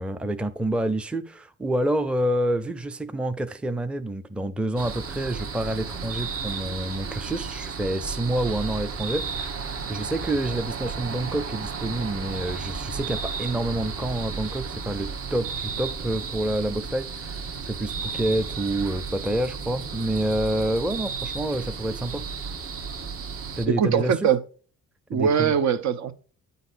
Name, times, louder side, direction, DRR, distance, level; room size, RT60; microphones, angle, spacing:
voice 1, 0.0-22.2 23.6-24.2 25.1-25.5, right 1 dB, 5° right, 0.5 m, -28 dB
sound 1, 4.8-23.7, right 5 dB, 50° right, 1.1 m, -33 dB
voice 2, 23.7-24.4 25.1-26.1, right 7 dB, 65° right, 0.8 m, -22 dB
9.1 x 4.0 x 2.6 m
cardioid pair, 90°, 30 cm